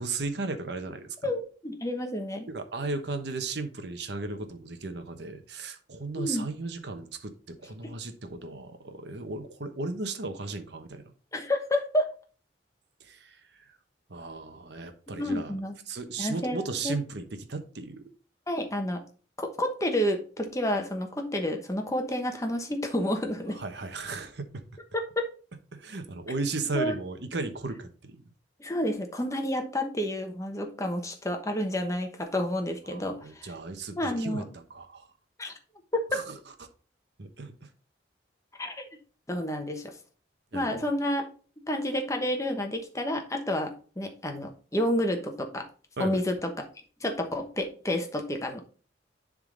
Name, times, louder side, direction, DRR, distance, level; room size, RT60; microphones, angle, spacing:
voice 1, 0.0-1.2 2.5-11.0 13.0-13.4 14.1-15.5 15.9-18.1 23.5-24.6 25.7-28.2 32.9-35.1 36.1-36.4 37.2-37.7 40.5-40.8 46.0-46.2, right 3 dB, 65° right, 7 dB, 1.0 m, -35 dB
voice 2, 1.2-2.5 6.2-6.5 11.3-12.1 15.2-15.7 16.2-16.9 18.5-19.0 19.4-23.6 24.9-25.2 26.7-26.9 28.6-33.5 33.9-34.5 35.4-35.5 35.9-36.0 38.6-38.8 39.3-39.9 40.5-41.3 41.7-45.7 46.0-46.6 47.0-48.6, left 1 dB, 15° left, 4 dB, 1.0 m, -30 dB
10.5 x 3.8 x 3.8 m, 0.39 s
head